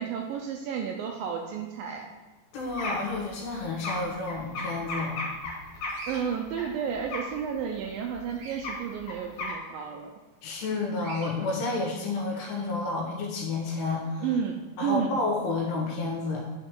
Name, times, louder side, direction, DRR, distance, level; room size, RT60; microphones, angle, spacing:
voice 1, 0.0-2.1 6.1-10.1 14.2-15.2, right 7 dB, 80° right, 2 dB, 2.1 m, -32 dB
voice 2, 2.5-5.2 10.4-14.3 14.8-16.5, left 3 dB, 90° left, -1 dB, 3.7 m, -30 dB
sound 1, 2.6-6.7 7.0-7.5 7.9-8.0 8.2-8.3 8.6-9.5, left 2 dB, 70° left, 3.6 m, -35 dB
Bird vocalization bird call bird song, 5.9-6.2 8.3-8.6 11.0-11.3, right 2 dB, 60° right, 2.1 m, -42 dB
10.5 x 4.8 x 3.7 m, 1.2 s
omnidirectional pair, 4.6 m